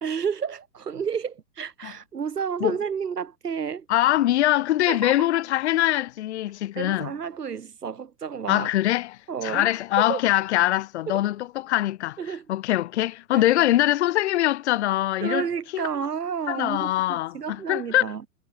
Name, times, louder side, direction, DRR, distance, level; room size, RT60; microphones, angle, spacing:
voice 1, 0.0-3.9 4.9-5.2 6.8-8.7 9.3-9.7 10.0-10.2 11.1-11.2 12.2-12.5 13.3-13.4 15.2-18.3, right 7 dB, 70° right, 2.7 m, -31 dB
voice 2, 3.9-7.1 8.5-9.2 9.4-12.2 12.5-15.4 15.7-15.8 16.5-18.1, left 14 dB, 45° left, 0.8 m, -23 dB
figure-of-eight pair, 110°, 49 cm